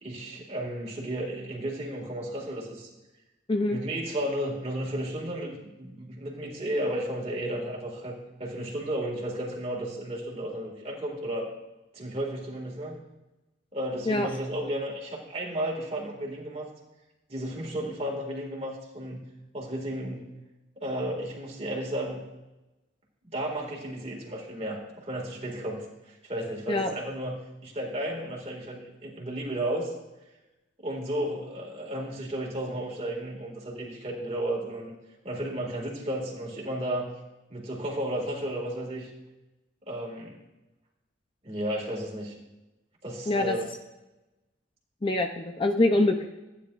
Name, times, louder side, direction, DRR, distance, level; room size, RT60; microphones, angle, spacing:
voice 1, 0.0-2.9 3.7-11.5 11.9-13.0 13.7-16.7 17.3-19.3 19.5-20.3 20.8-22.2 23.2-29.9 30.8-34.9 35.2-37.1 37.5-39.1 39.9-40.4 41.4-42.4 43.0-43.7, right 1 dB, 30° right, -2 dB, 2.0 m, -33 dB
voice 2, 45.0-46.3, left 2 dB, 25° left, 5 dB, 0.5 m, -24 dB
15.0 x 9.3 x 2.5 m, 1.0 s
head